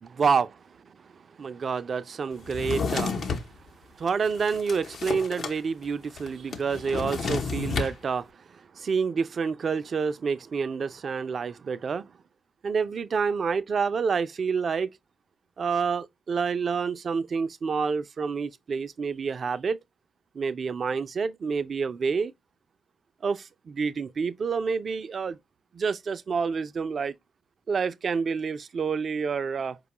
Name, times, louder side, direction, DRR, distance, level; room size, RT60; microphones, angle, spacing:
voice 1, 0.0-3.4 3.9-12.1 12.6-14.9 15.6-19.8 20.3-22.3 23.2-25.4 25.7-27.2 27.7-29.8, right 5 dB, 50° right, 0.4 m, -28 dB
Drawer open or close, 2.5-3.5 4.1-5.6 5.8-5.9 6.2-7.9, left 5 dB, 60° left, 0.7 m, -31 dB
4.6 x 2.2 x 2.9 m
hypercardioid pair, 50°, 0 cm